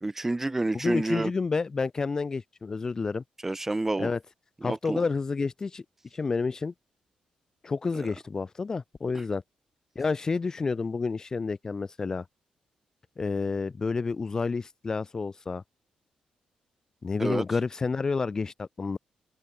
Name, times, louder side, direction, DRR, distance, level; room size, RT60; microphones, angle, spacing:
voice 1, 0.0-1.3 3.4-4.1 4.6-5.0 7.9-8.1 17.2-17.4, right 2 dB, 15° right, 1.4 m, -29 dB
voice 2, 0.7-3.2 4.0-4.2 4.6-5.8 6.1-6.7 7.6-9.4 10.0-12.2 13.2-15.6 17.0-19.0, left 4 dB, 25° left, 0.6 m, -29 dB
cardioid pair, 130°, 2 cm